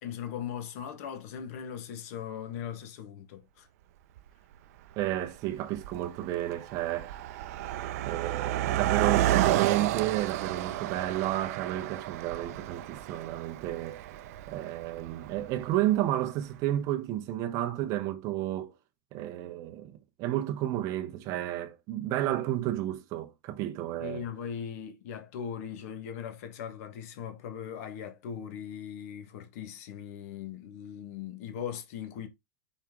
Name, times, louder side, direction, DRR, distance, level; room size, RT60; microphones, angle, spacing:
voice 1, 0.0-3.7 24.0-32.3, left 8 dB, 50° left, 1.4 m, -39 dB
Car passing by, 4.2-4.3 5.1-5.3 5.6-16.0, right 13 dB, 50° right, 0.6 m, -31 dB
voice 2, 5.0-7.2 7.6-14.0 14.5-18.7 19.1-24.2, right 13 dB, 30° right, 0.9 m, -31 dB
5.8 x 4.4 x 3.7 m
supercardioid pair, 170°, 10 cm